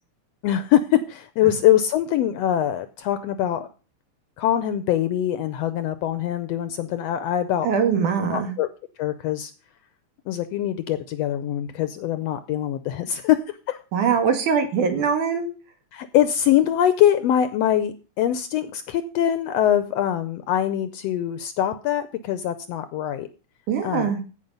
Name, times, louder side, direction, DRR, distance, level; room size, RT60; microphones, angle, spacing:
voice 1, 0.4-3.7 4.4-7.7 8.3-8.7 9.0-9.5 10.3-13.8 15.9-23.3 23.8-24.1, left 11 dB, 80° left, 12 dB, 1.5 m, -23 dB
voice 2, 7.6-8.5 13.9-15.5 23.7-24.2, right 6 dB, 85° right, 5 dB, 3.5 m, -22 dB
15.0 x 5.2 x 5.3 m, 0.34 s
omnidirectional pair, 3.5 m